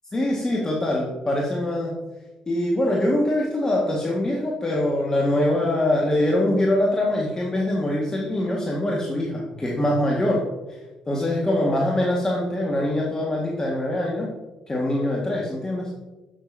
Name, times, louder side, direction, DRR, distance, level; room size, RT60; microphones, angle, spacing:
voice 1, 0.1-2.0 2.5-10.8 11.1-14.3 14.7-15.9, left 1 dB, 25° left, -3 dB, 1.6 m, -23 dB
7.8 x 7.7 x 2.7 m, 1.2 s
hypercardioid pair, 50°, 3 cm